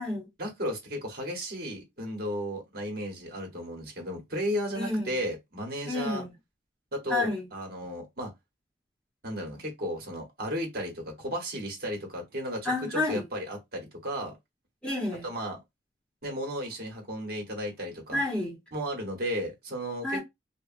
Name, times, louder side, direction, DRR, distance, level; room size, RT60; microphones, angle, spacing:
voice 1, 0.4-6.2 6.9-8.3 9.2-14.4 15.2-15.6 16.2-18.2 18.7-20.2, equal, 55° right, 1.2 m, -34 dB
voice 2, 4.7-5.1 5.8-6.3 7.1-7.4 12.6-13.2 14.8-15.3 18.1-18.6 20.0-20.2, left 2 dB, 5° left, 1.2 m, -29 dB
2.9 x 2.4 x 2.6 m
head